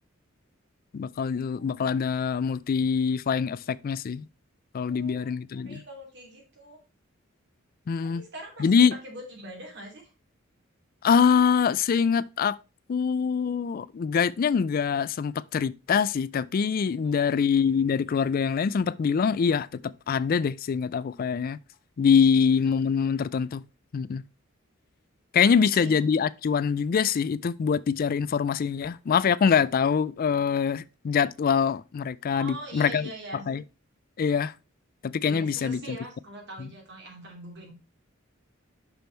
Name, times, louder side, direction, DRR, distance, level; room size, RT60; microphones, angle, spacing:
voice 1, 0.9-4.3 4.7-5.8 7.9-8.2 8.6-8.9 11.0-12.6 12.9-21.6 22.0-23.6 23.9-24.2 25.3-33.1 33.5-33.6 34.2-34.5 35.0-36.0 36.6-36.7, left 6 dB, 45° left, 0.3 m, -24 dB
voice 2, 4.8-5.3 5.6-6.8 8.0-10.1 17.0-17.3 25.4-25.9 32.4-33.5 35.2-37.7, right 1 dB, 60° right, 2.8 m, -42 dB
6.0 x 5.2 x 4.4 m
head